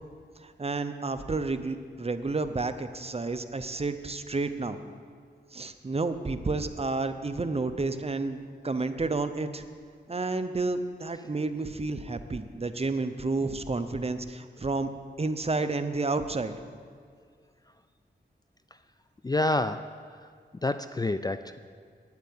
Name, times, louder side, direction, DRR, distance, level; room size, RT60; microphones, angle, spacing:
voice 1, 0.4-4.8 5.5-9.6 10.1-14.9 15.2-16.5, right 3 dB, 35° right, 9 dB, 0.7 m, -30 dB
voice 2, 19.2-19.9 20.2-20.3 20.6-21.6, left 2 dB, 20° left, 11 dB, 0.3 m, -28 dB
9.3 x 8.2 x 8.6 m, 2.1 s
wide cardioid pair, 75°, 19 cm